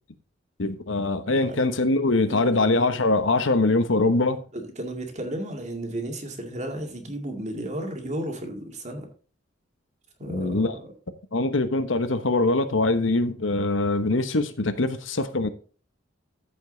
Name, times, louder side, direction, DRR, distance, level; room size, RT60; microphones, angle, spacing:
voice 1, 0.6-4.4 10.2-10.7 11.3-15.5, left 2 dB, 90° left, 1.1 m, -23 dB
voice 2, 2.2-2.9 3.5-3.8 4.5-9.1 10.2-10.9, right 1 dB, 40° right, 2.1 m, -34 dB
14.0 x 5.3 x 3.9 m
head